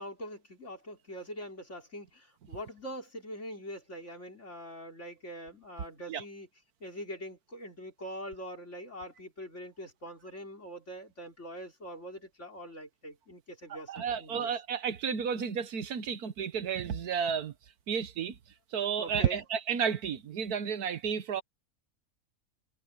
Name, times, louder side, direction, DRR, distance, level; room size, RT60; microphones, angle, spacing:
voice 1, 0.0-6.5 6.8-14.5 19.0-19.4, equal, 50° left, 5.1 m, -43 dB
voice 2, 13.7-17.5 17.9-18.3 18.7-21.4, right 7 dB, 75° right, 1.6 m, -32 dB
omnidirectional pair, 1.6 m